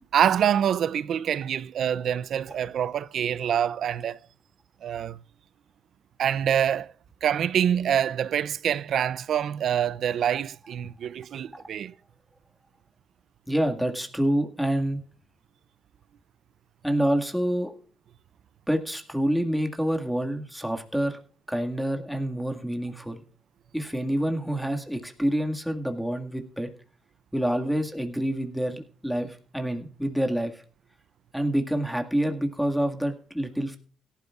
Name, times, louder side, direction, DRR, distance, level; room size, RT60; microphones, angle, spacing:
voice 1, 0.1-4.2 4.8-5.2 6.2-6.9 7.2-11.9, right 9 dB, 65° right, 0.5 m, -25 dB
voice 2, 13.5-15.0 16.8-17.7 18.7-21.2 21.5-23.2 23.7-26.7 27.3-30.6 31.3-33.8, right 1 dB, ahead, 1.9 m, -27 dB
17.5 x 11.5 x 2.4 m
cardioid pair, 90°, 0 cm